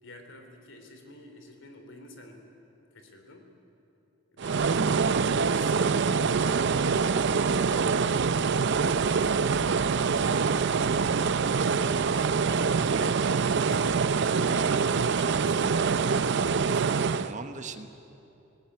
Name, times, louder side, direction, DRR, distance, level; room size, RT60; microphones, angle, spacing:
voice 1, 0.0-2.5 2.9-3.5 4.3-6.3 8.9-9.7 11.8-15.7, left 1 dB, 70° left, 5 dB, 3.0 m, -48 dB
sound 1, 4.4-17.3, right 5 dB, 60° right, 0.6 m, -25 dB
voice 2, 8.5-9.3 10.2-10.6 16.7-16.9 17.1-17.9, right 3 dB, 40° right, 8 dB, 1.0 m, -41 dB
18.5 x 18.5 x 9.6 m, 2.8 s
head